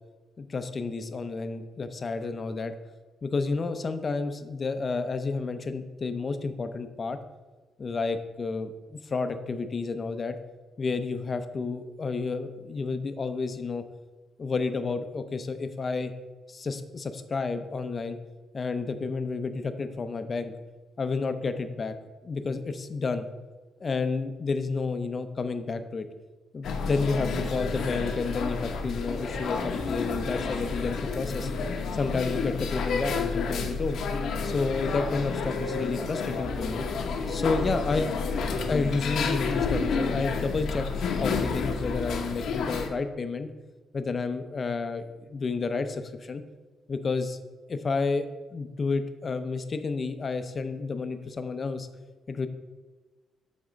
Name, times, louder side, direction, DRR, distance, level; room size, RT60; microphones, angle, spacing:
voice 1, 0.4-2.7 3.2-7.2 7.8-10.4 10.8-13.8 14.4-16.1 16.5-18.2 18.5-20.5 21.0-21.9 22.2-23.3 23.8-26.1 26.5-31.5 31.9-34.0 34.4-36.8 37.3-38.2 38.7-40.8 41.2-43.5 43.9-46.4 46.9-47.4 47.7-51.9 52.3-52.5, left 4 dB, 40° left, 9 dB, 0.6 m, -30 dB
sound 1, 26.6-42.9, left 4 dB, 70° left, 0.8 m, -30 dB
7.3 x 3.6 x 5.1 m, 1.3 s
cardioid pair, 90°, 0 cm